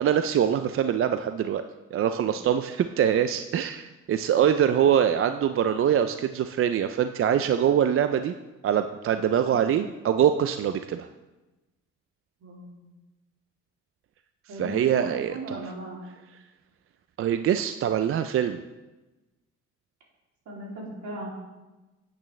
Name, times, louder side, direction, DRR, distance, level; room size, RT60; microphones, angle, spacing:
voice 1, 0.0-1.6 1.9-8.4 8.6-11.1 14.5-15.6 17.2-18.6, right 9 dB, 45° right, 9 dB, 0.4 m, -24 dB
voice 2, 12.4-12.8 14.5-16.0 20.5-21.3, right 1 dB, 70° right, -3 dB, 2.9 m, -38 dB
8.8 x 8.7 x 3.2 m, 1.1 s
cardioid pair, 90°, 30 cm